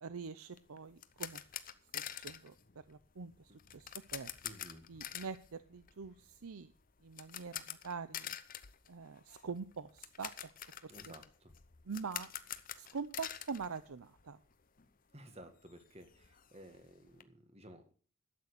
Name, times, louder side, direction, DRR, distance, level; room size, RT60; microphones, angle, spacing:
voice 1, 0.0-1.4 1.9-2.5 2.9-4.3 4.9-6.7 7.0-8.4 8.9-10.5 10.8-11.1 11.8-12.3 12.8-14.4, right 5 dB, 80° right, 13 dB, 0.6 m, -44 dB
sound 1, 0.5-14.5 14.8-14.9 15.3-15.4 15.7-17.2, left 11 dB, 40° left, 0.8 m, -47 dB
voice 2, 4.4-4.9 10.9-11.5 15.1-17.9, right 1 dB, 30° right, 8 dB, 1.6 m, -55 dB
12.0 x 8.5 x 6.6 m, 0.42 s
head